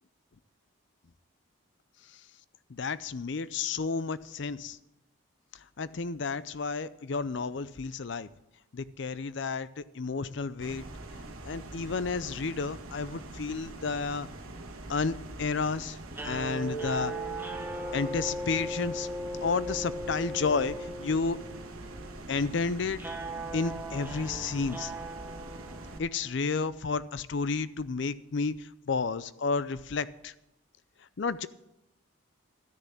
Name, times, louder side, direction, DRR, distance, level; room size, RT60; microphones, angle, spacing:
voice 1, 2.7-4.8 5.8-8.3 8.7-10.8 11.4-14.3 14.9-16.0 16.2-17.1 17.9-19.1 19.4-20.7 21.0-21.4 22.3-23.0 23.5-24.9 26.0-30.3 31.2-31.5, left 4 dB, 55° left, 16 dB, 0.5 m, -31 dB
sound 1, 10.6-26.0, right 2 dB, 90° right, 1.4 m, -44 dB
sound 2, 16.1-26.3, right 1 dB, 10° right, 1.0 m, -38 dB
13.0 x 6.8 x 8.4 m, 0.89 s
head